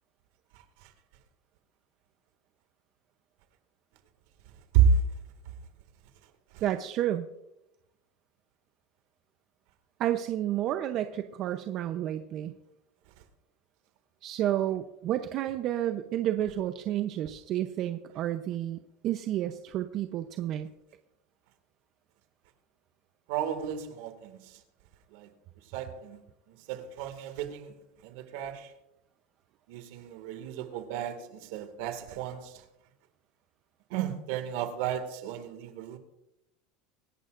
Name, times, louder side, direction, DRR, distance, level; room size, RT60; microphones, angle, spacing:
voice 1, 6.6-7.3 10.0-12.5 14.2-20.7, right 12 dB, 50° right, 0.7 m, -31 dB
voice 2, 23.3-24.5 25.1-25.3 25.7-26.2 26.7-27.7 28.0-28.7 29.7-32.6 33.9-36.0, right 7 dB, 70° right, 2.1 m, -31 dB
25.0 x 11.0 x 2.6 m
supercardioid pair, 120°, 0 cm